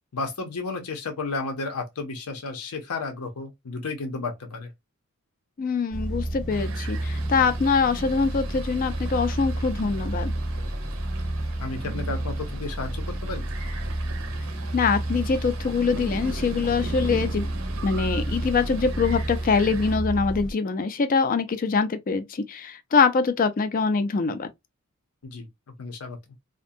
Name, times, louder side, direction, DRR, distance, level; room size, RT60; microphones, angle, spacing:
voice 1, 0.1-4.7 11.6-13.5 25.2-25.5 25.8-26.2, left 3 dB, 80° left, 0.7 m, -32 dB
voice 2, 5.6-10.3 14.7-17.5 17.8-24.5, left 5 dB, 40° left, 0.3 m, -24 dB
sound 1, 5.9-20.5, right 1 dB, ahead, 0.8 m, -30 dB
sound 2, 6.5-20.0, right 4 dB, 60° right, 0.5 m, -41 dB
2.5 x 2.1 x 2.6 m
head